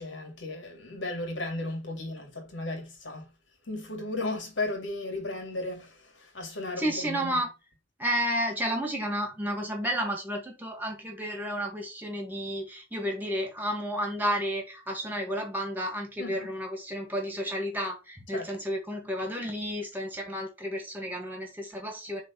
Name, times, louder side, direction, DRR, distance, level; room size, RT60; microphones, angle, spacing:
voice 1, 0.0-3.3 3.7-7.4 16.2-16.5 18.3-18.5, left 2 dB, 70° left, 2.7 m, -35 dB
voice 2, 6.8-7.5 8.0-22.2, equal, 10° right, 2.1 m, -32 dB
6.3 x 3.7 x 5.5 m
head